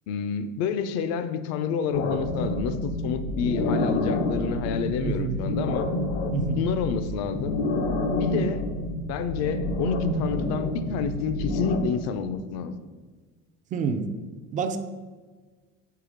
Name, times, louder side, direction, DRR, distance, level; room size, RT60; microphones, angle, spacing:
voice 1, 0.1-5.9 6.5-7.6 8.2-8.6 9.1-12.8, left 6 dB, 60° left, 11 dB, 0.6 m, -29 dB
sound 1, 1.9-11.8, left 1 dB, 85° left, 1.0 m, -28 dB
voice 2, 5.0-5.4 6.3-6.6 13.7-14.1 14.5-14.8, right 6 dB, 25° right, 9 dB, 0.4 m, -28 dB
7.4 x 4.8 x 5.0 m, 1.4 s
cardioid pair, 165°, 30 cm